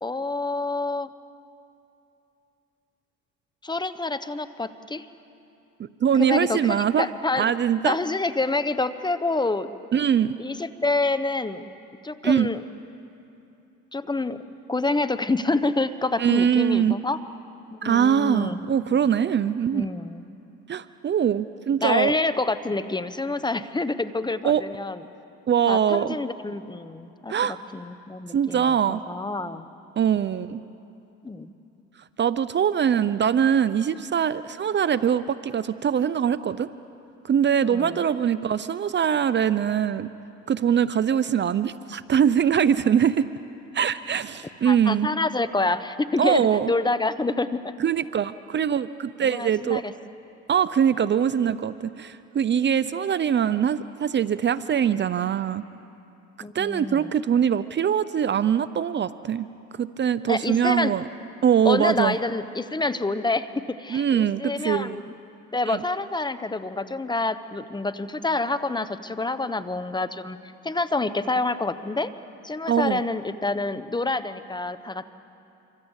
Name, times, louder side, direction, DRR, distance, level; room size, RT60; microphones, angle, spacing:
voice 1, 0.0-1.1 3.6-5.1 6.2-7.5 7.8-9.7 10.4-11.6 12.0-12.6 13.9-14.4 14.7-17.2 17.7-18.6 19.7-20.2 21.8-25.0 25.7-27.5 27.7-29.6 31.2-31.5 37.6-38.0 44.6-47.7 49.2-49.9 56.4-57.1 60.3-60.9 61.6-65.0 65.5-70.4 70.6-72.1 72.4-75.1, left 3 dB, 15° left, 12 dB, 1.1 m, -27 dB
voice 2, 6.0-7.1 7.3-8.0 9.9-10.4 12.2-12.5 16.2-17.0 17.8-19.9 20.7-22.1 24.4-24.6 25.5-26.2 27.3-27.6 28.3-29.0 30.0-30.6 32.2-36.7 37.2-40.1 40.5-43.2 43.7-45.1 46.2-46.7 47.8-49.8 50.5-55.6 56.5-59.5 59.8-61.1 61.4-62.2 63.9-65.0 65.7-65.8 72.7-73.1, right 8 dB, 40° right, 14 dB, 0.7 m, -22 dB
26.0 x 25.0 x 8.2 m, 2.9 s
supercardioid pair, 90°, 29 cm